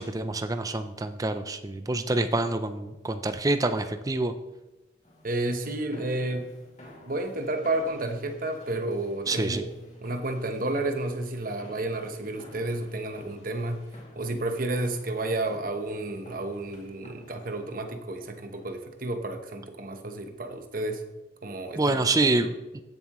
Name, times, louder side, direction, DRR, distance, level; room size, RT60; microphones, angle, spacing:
voice 1, 0.0-4.3 9.3-9.6 21.8-22.8, right 2 dB, 20° right, 9 dB, 0.4 m, -27 dB
sound 1, 5.0-18.9, left 1 dB, 35° left, 2.4 m, -52 dB
voice 2, 5.2-6.5 7.1-9.6 10.0-13.9 14.2-21.0 21.4-22.3, right 2 dB, 45° right, 6 dB, 1.0 m, -31 dB
15.5 x 7.4 x 3.1 m, 1.1 s
head